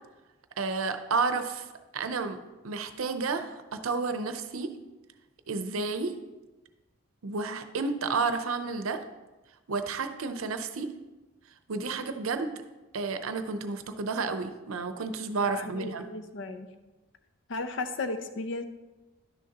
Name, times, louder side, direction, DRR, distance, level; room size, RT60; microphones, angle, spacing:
voice 1, 0.6-1.7 1.9-2.4 2.6-4.7 5.5-6.2 7.2-9.0 9.7-10.9 11.7-12.5 12.9-16.1, right 4 dB, 80° right, 9 dB, 0.6 m, -31 dB
voice 2, 15.4-16.7 17.5-18.6, left 3 dB, 60° left, 9 dB, 0.6 m, -35 dB
11.0 x 6.4 x 2.9 m, 1.1 s
head